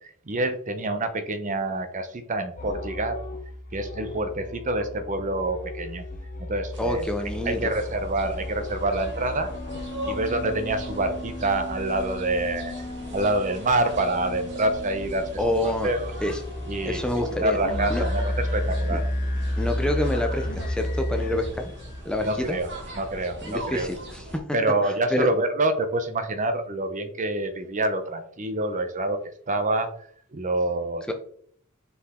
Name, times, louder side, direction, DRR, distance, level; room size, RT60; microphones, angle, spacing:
voice 1, 0.0-3.2 3.7-6.0 6.4-7.1 7.5-9.5 10.0-12.7 13.1-15.3 15.6-16.1 16.7-17.0 17.4-19.1 22.2-22.7 23.0-23.9 24.5-29.2 29.5-29.9 30.3-31.1, right 2 dB, 35° right, 9 dB, 0.7 m, -27 dB
sound 1, 2.6-22.0, left 1 dB, 35° left, 0.8 m, -33 dB
sound 2, 6.7-24.4, equal, 55° right, 2.0 m, -40 dB
voice 2, 6.8-7.6 15.4-15.9 16.2-16.4 16.9-17.6 17.9-18.0 18.9-19.0 19.6-21.7 22.0-22.6 23.4-24.3 24.8-25.3 31.1-31.2, left 1 dB, 5° left, 4 dB, 0.5 m, -27 dB
6.6 x 4.8 x 3.6 m, 0.62 s
head